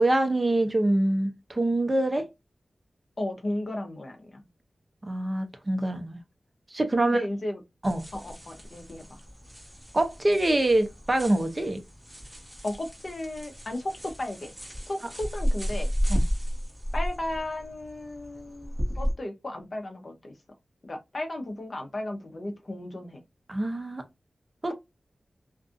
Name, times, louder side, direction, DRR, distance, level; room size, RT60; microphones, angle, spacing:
voice 1, 0.0-2.3 5.1-6.2 6.7-7.2 7.8-8.0 9.9-11.8 16.1-16.2 23.5-24.0 24.6-24.7, right 1 dB, 25° right, 0.5 m, -25 dB
voice 2, 3.2-4.4 7.0-7.6 8.1-9.2 12.6-13.9 14.2-14.5 14.9-15.9 16.9-20.3 20.8-23.2, left 1 dB, 45° left, 0.7 m, -34 dB
sound 1, 7.8-19.1, equal, 5° right, 1.2 m, -33 dB
2.5 x 2.4 x 2.4 m
wide cardioid pair, 115°, 0 cm